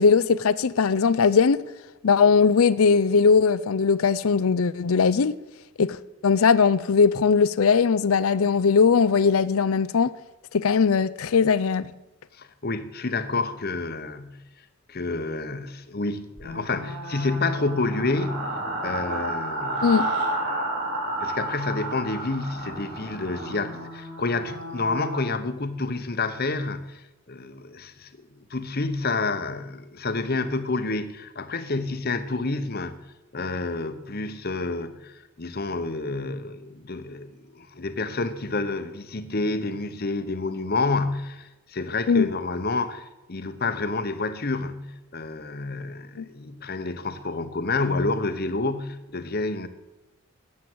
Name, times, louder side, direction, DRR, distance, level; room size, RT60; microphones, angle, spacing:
voice 1, 0.0-1.6 2.0-5.4 5.8-6.0 6.2-10.1 10.5-11.9 19.8-20.1 42.1-42.3 46.2-46.3, left 5 dB, 70° left, 0.5 m, -19 dB
voice 2, 12.3-14.4 14.9-18.5 18.8-19.9 21.2-27.0 27.3-33.0 33.3-49.7, left 3 dB, 45° left, 1.0 m, -29 dB
sound 1, 16.4-25.3, right 1 dB, 50° right, 4.7 m, -31 dB
13.5 x 8.6 x 7.9 m
head